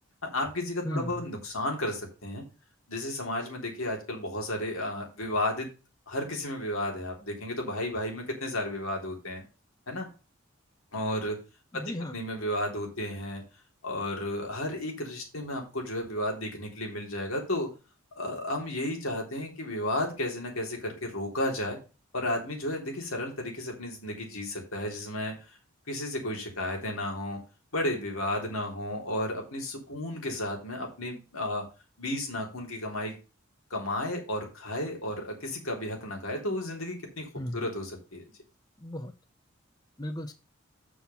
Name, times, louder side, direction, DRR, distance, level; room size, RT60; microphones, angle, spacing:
voice 1, 0.2-2.4 2.9-5.7 6.1-9.4 9.9-10.1 10.9-11.4 11.7-13.4 13.8-17.7 18.1-21.8 22.1-25.3 25.9-27.4 27.7-31.6 32.0-33.1 33.7-37.2 37.5-38.2, left 1 dB, 85° left, 1 dB, 3.4 m, -33 dB
voice 2, 0.8-1.2 11.7-12.1 37.4-37.6 38.8-39.1 40.0-40.3, left 1 dB, 20° left, 9 dB, 0.7 m, -35 dB
7.8 x 6.0 x 5.6 m, 0.31 s
head